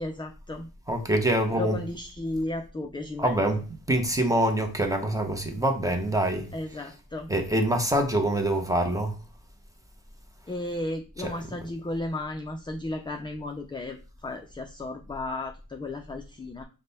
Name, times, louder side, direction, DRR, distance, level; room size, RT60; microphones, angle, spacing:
voice 1, 0.0-0.7 1.5-3.4 6.5-7.3 10.5-16.6, left 2 dB, 15° left, 0.4 m, -34 dB
voice 2, 0.9-1.8 3.2-6.5 7.3-9.2 11.2-11.5, right 1 dB, 10° right, 0.8 m, -25 dB
5.2 x 2.2 x 4.0 m
cardioid pair, 90°, 39 cm